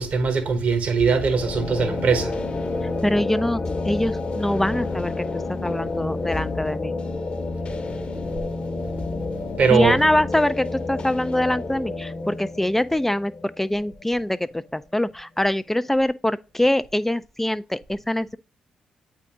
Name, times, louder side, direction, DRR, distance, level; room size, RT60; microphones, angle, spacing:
voice 1, 0.0-2.4 9.6-10.0, right 5 dB, 60° right, 1.2 m, -21 dB
sound 1, 1.0-14.7, left 3 dB, 40° left, 0.9 m, -30 dB
voice 2, 3.0-3.6 3.8-7.0 9.7-13.3 13.6-14.4 14.7-18.4, left 1 dB, 10° left, 0.3 m, -23 dB
8.2 x 3.7 x 3.5 m
hypercardioid pair, 50°, 3 cm